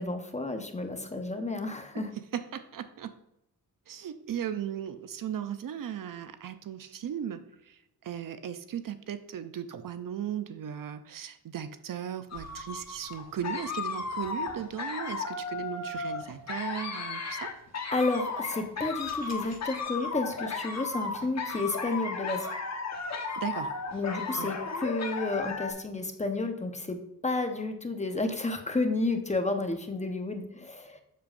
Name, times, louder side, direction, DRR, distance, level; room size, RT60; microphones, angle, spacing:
voice 1, 0.0-2.1 17.9-22.5 23.9-31.0, left 2 dB, 20° left, 6 dB, 1.0 m, -31 dB
voice 2, 2.3-3.1 3.9-17.5 23.4-23.8 24.4-24.5, right 9 dB, 60° right, 11 dB, 0.6 m, -37 dB
sound 1, 12.3-25.7, left 4 dB, 45° left, 1.2 m, -35 dB
7.5 x 6.9 x 2.6 m, 0.84 s
cardioid pair, 100°, 38 cm